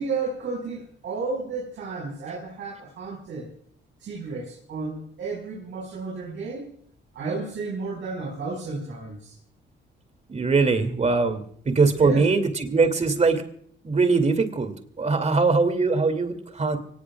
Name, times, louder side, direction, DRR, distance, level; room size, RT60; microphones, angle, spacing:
voice 1, 0.0-3.5 4.0-6.7 7.1-9.3 11.9-12.2, right 4 dB, 70° right, -3 dB, 5.3 m, -32 dB
voice 2, 10.3-13.4 13.8-16.8, right 4 dB, 35° right, 8 dB, 2.7 m, -22 dB
25.0 x 18.5 x 2.4 m, 0.62 s
cardioid pair, 90°, 20 cm